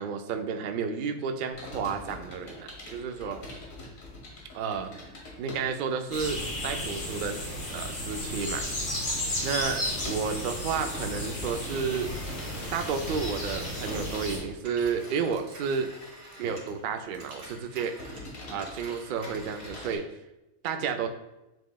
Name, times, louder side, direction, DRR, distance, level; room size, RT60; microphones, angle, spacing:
voice 1, 0.0-3.4 4.5-4.9 5.4-8.7 9.1-9.2 9.4-12.1 12.7-15.9 16.4-17.9 18.5-20.1 20.6-21.1, right 6 dB, 90° right, 5 dB, 0.4 m, -31 dB
Computer keyboard, 1.5-20.0, left 2 dB, 75° left, 1.5 m, -46 dB
sound 1, 6.1-14.4, left 1 dB, 55° left, 1.7 m, -33 dB
Telephone, 12.1-16.8 17.1-20.0, right 1 dB, 70° right, 1.7 m, -49 dB
7.8 x 3.1 x 2.2 m, 0.98 s
omnidirectional pair, 1.4 m